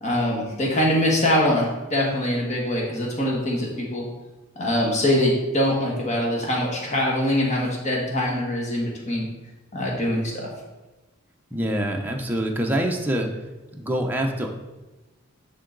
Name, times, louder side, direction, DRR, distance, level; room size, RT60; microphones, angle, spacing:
voice 1, 0.0-4.0 4.5-9.2 9.7-10.5, left 1 dB, 35° left, -2 dB, 1.5 m, -23 dB
voice 2, 11.5-13.3 13.7-14.5, right 1 dB, 10° right, 1 dB, 0.7 m, -25 dB
11.0 x 3.9 x 3.9 m, 1.1 s
head